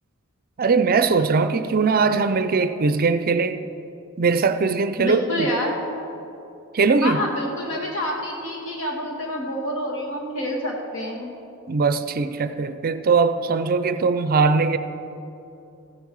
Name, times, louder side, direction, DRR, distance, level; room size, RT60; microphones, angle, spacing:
voice 1, 0.6-3.6 4.2-5.5 6.7-7.2 11.7-14.8, right 4 dB, 45° right, 11 dB, 0.5 m, -20 dB
voice 2, 5.0-5.7 7.0-11.3, equal, 65° left, -1 dB, 2.1 m, -27 dB
15.5 x 9.5 x 4.7 m, 2.9 s
head